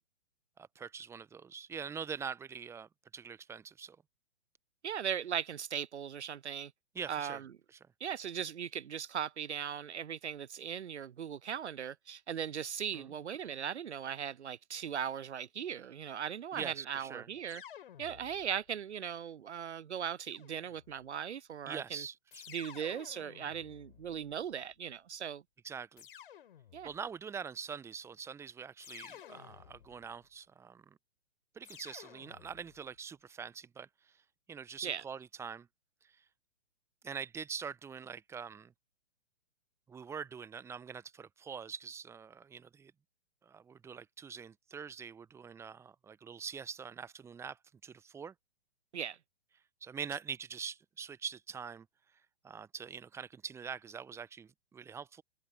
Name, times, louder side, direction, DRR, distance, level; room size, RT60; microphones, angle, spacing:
voice 1, 0.6-4.0 6.9-7.4 12.9-13.1 16.6-17.3 21.7-22.4 25.6-26.0 26.8-31.0 31.5-33.9 34.5-35.7 36.0-36.1 37.0-38.7 39.9-42.9 43.4-48.3 49.8-51.9 52.4-55.2, right 6 dB, 10° right, 1.1 m, -44 dB
voice 2, 4.8-6.7 7.1-7.5 8.0-17.6 18.0-22.1 22.5-25.4 26.7-26.9 34.8-35.0 48.9-49.2, right 8 dB, 75° right, 0.5 m, -38 dB
sound 1, 17.5-18.7 20.2-21.1 22.3-24.6 26.0-27.1 28.8-30.2 31.6-32.9, left 10 dB, 50° left, 5.7 m, -53 dB
figure-of-eight pair, 120°, 34 cm